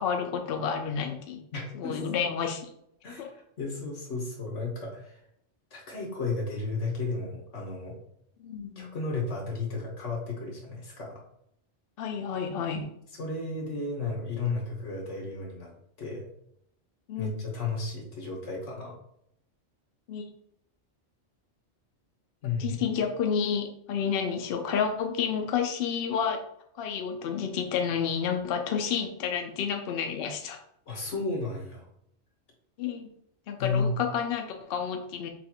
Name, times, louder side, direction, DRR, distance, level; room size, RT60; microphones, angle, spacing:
voice 1, 0.0-1.4 1.7-2.6 3.2-3.3 8.4-8.9 12.0-12.9 17.1-17.3 20.1-20.2 22.6-26.4 26.8-30.6 32.8-33.1 33.5-35.3, left 7 dB, 60° left, 4 dB, 0.7 m, -30 dB
voice 2, 1.5-2.3 3.0-5.2 5.7-7.9 8.8-11.2 13.2-15.7 16.0-16.3 17.2-18.9 22.4-22.9 30.9-31.9 33.6-33.9, left 3 dB, 85° left, -1 dB, 1.6 m, -33 dB
6.1 x 2.5 x 2.9 m, 0.73 s
omnidirectional pair, 1.2 m